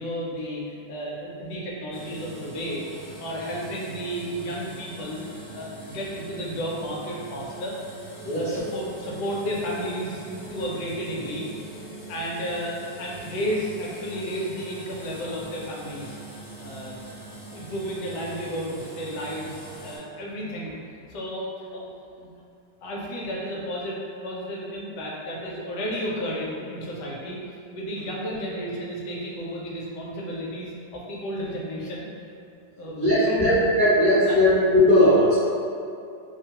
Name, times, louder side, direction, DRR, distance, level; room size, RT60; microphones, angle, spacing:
voice 1, 0.0-5.2 5.5-7.7 8.3-10.2 10.5-11.5 12.1-16.2 16.6-20.7 21.1-21.8 22.2-22.3 22.8-24.0 24.2-27.4 27.7-32.1 32.8-33.4 34.3-34.4, equal, 75° left, -4 dB, 1.1 m, -32 dB
sound 1, 1.9-20.0, right 2 dB, 40° left, 1.0 m, -42 dB
voice 2, 8.2-8.6 32.9-35.4, left 1 dB, 45° right, -15 dB, 0.6 m, -19 dB
3.0 x 2.2 x 2.8 m, 2.5 s
omnidirectional pair, 2.0 m